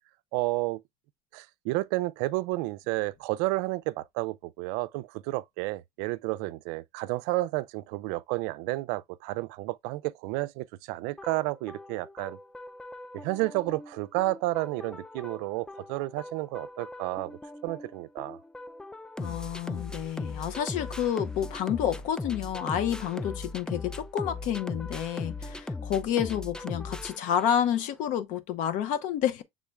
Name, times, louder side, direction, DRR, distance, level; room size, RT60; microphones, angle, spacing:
voice 1, 0.3-0.8 1.3-12.4 13.1-18.4, right 20 dB, 75° right, 0.4 m, -31 dB
sound 1, 11.2-27.8, left 2 dB, 5° left, 0.3 m, -39 dB
voice 2, 19.2-29.4, left 9 dB, 65° left, 0.8 m, -29 dB
6.2 x 3.7 x 2.2 m
supercardioid pair, 95°, 14 cm